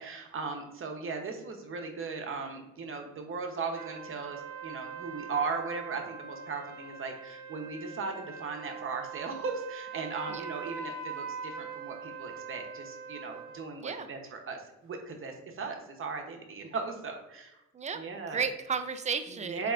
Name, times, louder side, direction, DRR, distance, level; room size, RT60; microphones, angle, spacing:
voice 1, 0.0-17.5 17.9-18.4 19.4-19.7, right 4 dB, 45° right, 3 dB, 0.8 m, -37 dB
sound 1, 3.8-13.7, right 6 dB, 75° right, 0.6 m, -42 dB
voice 2, 18.3-19.6, right 5 dB, 25° right, 9 dB, 0.4 m, -33 dB
4.4 x 3.4 x 2.4 m, 0.92 s
cardioid pair, 90°, 30 cm